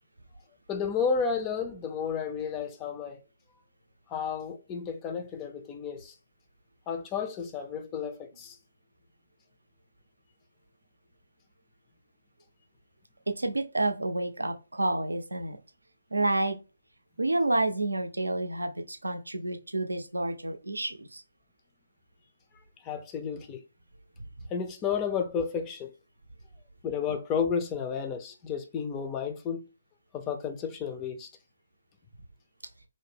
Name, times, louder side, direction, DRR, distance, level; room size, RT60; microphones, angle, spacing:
voice 1, 0.7-3.2 4.1-6.1 6.9-8.6 22.8-23.6 24.5-25.9 26.8-29.7 30.1-31.3, left 6 dB, 20° left, 0.4 m, -32 dB
voice 2, 13.3-15.6 16.1-16.6 17.2-21.2, right 2 dB, 75° right, 0.4 m, -29 dB
2.7 x 2.0 x 3.2 m
figure-of-eight pair, 140°, 0 cm